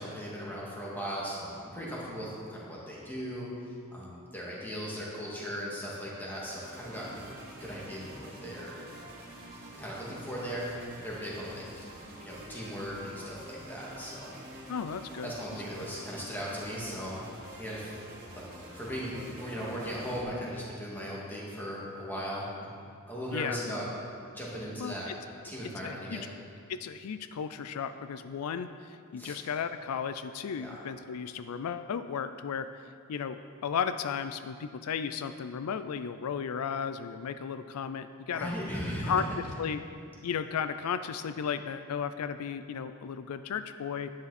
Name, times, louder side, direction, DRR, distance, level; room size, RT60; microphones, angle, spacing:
voice 1, 0.0-3.5 3.9-7.2 7.6-8.8 9.8-10.7 11.0-11.9 12.2-14.4 15.2-17.2 17.6-18.0 18.3-18.5 18.7-22.7 23.1-23.8 24.3-25.1 25.4-26.3 29.2-29.4 30.6-30.7 38.3-39.1, equal, 10° left, -6 dB, 2.3 m, -38 dB
sound 1, 6.5-20.2, right 1 dB, 45° right, 2.4 m, -47 dB
voice 2, 14.7-15.3 23.3-23.6 24.8-25.1 25.6-26.3 26.7-32.7 33.1-38.6 39.0-39.2 39.6-39.8 40.2-44.1, left 7 dB, 85° left, 11 dB, 0.4 m, -34 dB
11.0 x 9.5 x 4.2 m, 2.4 s
head